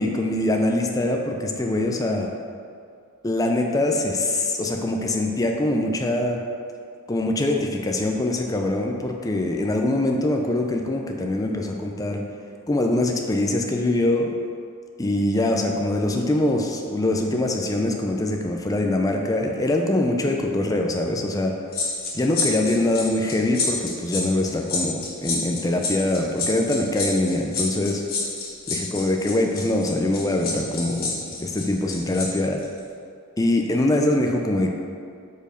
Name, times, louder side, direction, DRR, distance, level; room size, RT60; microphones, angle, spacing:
voice 1, 0.0-2.3 3.2-6.4 7.1-12.2 12.7-14.3 15.0-21.5 22.1-28.0 28.9-32.6 33.4-34.7, left 1 dB, 15° left, 2 dB, 0.4 m, -23 dB
sound 1, 21.7-32.3 32.6-32.8, left 4 dB, 45° left, 1.3 m, -29 dB
5.1 x 4.5 x 5.0 m, 2.3 s
head